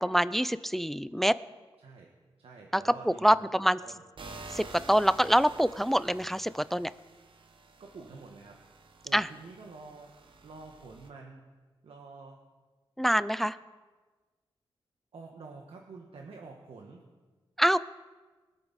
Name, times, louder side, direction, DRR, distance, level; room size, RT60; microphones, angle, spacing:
voice 1, 0.0-1.4 2.7-2.8 3.1-3.8 4.5-6.9 9.1-9.3 13.0-13.5 17.6-17.8, equal, 5° left, 16 dB, 0.3 m, -25 dB
voice 2, 1.8-2.1 2.4-3.5 3.8-4.0 5.2-5.3 7.8-10.1 10.4-11.5 11.8-12.4 13.3-13.5 15.1-17.0, right 4 dB, 75° right, 1 dB, 1.4 m, -48 dB
sound 1, 4.2-11.1, right 3 dB, 60° right, 1.2 m, -50 dB
22.0 x 7.9 x 4.1 m, 1.3 s
wide cardioid pair, 85°, 10 cm